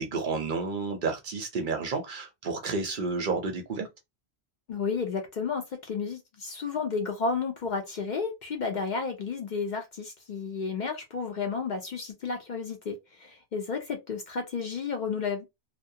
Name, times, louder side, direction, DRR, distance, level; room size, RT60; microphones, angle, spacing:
voice 1, 0.0-3.9, right 4 dB, 60° right, 0.6 m, -31 dB
voice 2, 4.7-15.5, left 5 dB, 55° left, 0.5 m, -32 dB
2.3 x 2.1 x 2.7 m
omnidirectional pair, 1.1 m